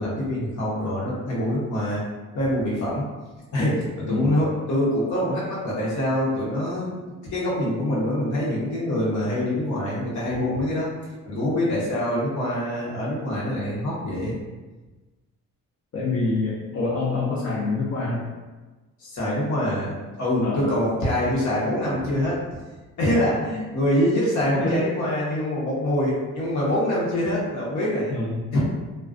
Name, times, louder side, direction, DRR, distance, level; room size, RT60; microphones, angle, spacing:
voice 1, 0.0-2.0 2.3-3.0 3.5-10.9 11.3-14.4 19.0-22.6 23.0-28.2 28.5-28.6, left 1 dB, 70° left, -6 dB, 1.0 m, -25 dB
voice 2, 15.9-18.2 20.4-20.7 24.6-24.9 28.1-28.4, left 3 dB, 50° left, -6 dB, 0.6 m, -26 dB
2.3 x 2.2 x 2.4 m, 1.2 s
cardioid pair, 90°, 30 cm